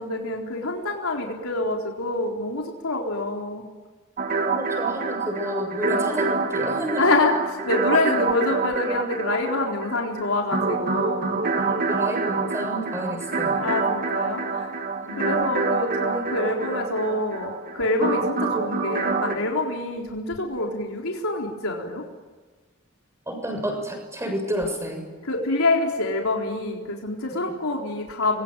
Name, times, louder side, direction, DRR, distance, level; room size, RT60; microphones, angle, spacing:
voice 1, 0.0-3.6 7.0-7.3 7.7-11.4 11.8-11.9 13.5-14.7 15.2-22.0 25.2-28.4, left 2 dB, 80° left, 0 dB, 4.0 m, -26 dB
sound 1, 4.2-19.4, right 4 dB, 45° right, 2.0 m, -26 dB
voice 2, 4.4-7.1 11.6-13.6 15.0-15.4 23.3-25.1, equal, 15° right, 4 dB, 7.2 m, -30 dB
28.0 x 23.0 x 9.1 m, 1.3 s
head